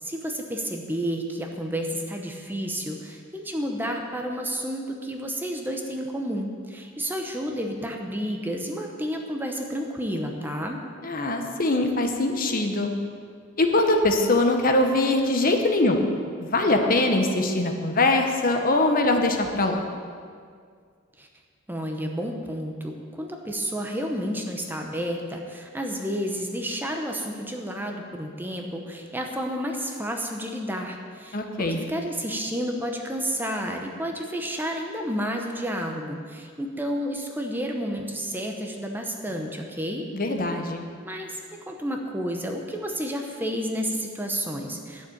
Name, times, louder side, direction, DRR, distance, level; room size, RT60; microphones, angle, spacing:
voice 1, 0.0-10.8 21.2-21.3 21.7-40.1 41.0-41.4 41.7-45.1, equal, 10° right, 2 dB, 0.9 m, -31 dB
voice 2, 11.0-12.9 13.6-16.0 16.4-19.8 31.3-31.8 40.1-40.9, left 2 dB, 45° left, 4 dB, 1.2 m, -22 dB
11.0 x 7.1 x 8.7 m, 2.1 s
head